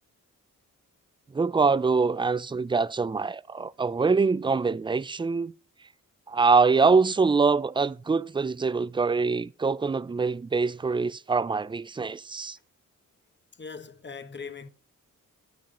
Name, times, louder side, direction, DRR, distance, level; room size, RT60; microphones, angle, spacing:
voice 1, 1.3-5.5 6.3-12.6, right 4 dB, 15° right, 0.3 m, -24 dB
voice 2, 13.6-14.7, left 5 dB, 35° left, 0.9 m, -40 dB
9.3 x 8.5 x 2.5 m
cardioid pair, 70°, 33 cm